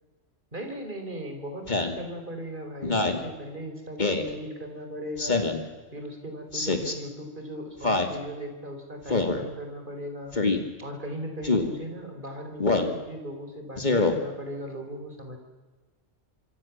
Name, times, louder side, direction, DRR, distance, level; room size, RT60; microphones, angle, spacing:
voice 1, 0.5-15.4, equal, 40° right, 4 dB, 4.8 m, -38 dB
Speech synthesizer, 1.7-2.0 2.8-3.2 4.0-4.3 5.2-5.6 6.5-6.9 7.8-8.1 9.1-9.4 10.3-10.6 11.4-11.7 12.6-12.9 13.8-14.1, left 3 dB, 35° left, 2.6 m, -24 dB
25.5 x 25.0 x 7.4 m, 1.3 s
omnidirectional pair, 1.3 m